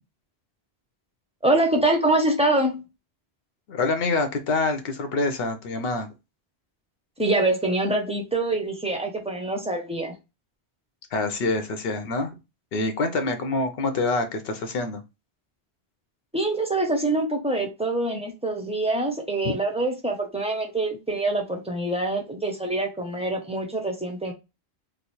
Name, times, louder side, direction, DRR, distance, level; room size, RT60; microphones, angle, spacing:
voice 1, 1.4-2.9 7.2-10.2 16.3-24.3, right 2 dB, 10° right, 0.5 m, -25 dB
voice 2, 3.7-6.1 11.1-12.3 12.7-15.0, left 3 dB, 65° left, 0.9 m, -26 dB
3.1 x 2.0 x 4.1 m
omnidirectional pair, 1.1 m